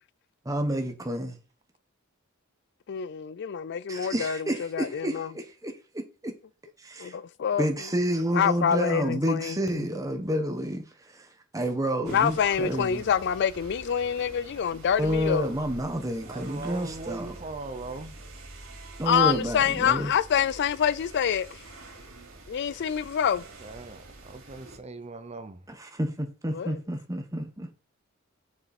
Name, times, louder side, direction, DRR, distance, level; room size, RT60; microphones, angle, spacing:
voice 1, 0.4-1.4 3.9-6.4 6.8-7.1 7.6-10.8 11.1-11.3 11.5-13.0 15.0-17.3 19.0-20.1 25.8-27.7, right 1 dB, 15° right, 1.4 m, -29 dB
voice 2, 2.9-5.3 7.0-7.7 8.3-9.9 12.0-15.5 19.0-21.6 22.5-23.4 26.5-26.8, left 8 dB, 55° left, 0.4 m, -26 dB
sound 1, 12.0-24.8, right 2 dB, 75° right, 2.6 m, -46 dB
voice 3, 16.3-18.2 23.4-25.7, right 3 dB, 30° right, 0.8 m, -40 dB
7.1 x 6.6 x 4.3 m
head